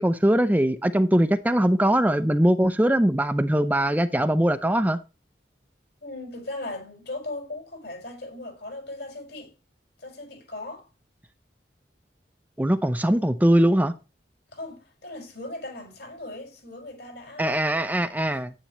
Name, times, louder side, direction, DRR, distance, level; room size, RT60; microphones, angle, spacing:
voice 1, 0.0-5.0 12.6-13.9 17.4-18.5, right 1 dB, 10° right, 0.5 m, -21 dB
voice 2, 6.0-9.5 10.0-10.9 14.5-17.7, left 2 dB, 70° left, 5.6 m, -38 dB
10.5 x 10.0 x 3.1 m
head